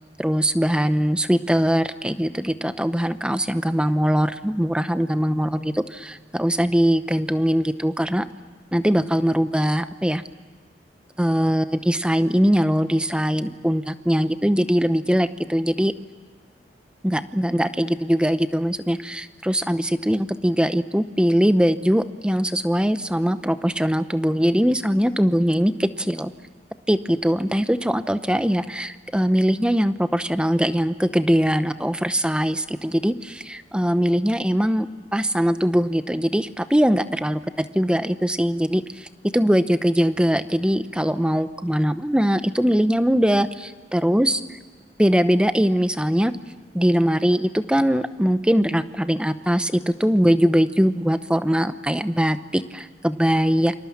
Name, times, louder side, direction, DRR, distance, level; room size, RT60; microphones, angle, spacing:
voice 1, 0.2-8.3 8.7-10.2 11.2-15.9 17.0-26.3 26.9-44.6 45.0-46.3 46.7-53.7, equal, 5° right, 11 dB, 0.8 m, -21 dB
29.0 x 26.0 x 7.3 m, 1.5 s
head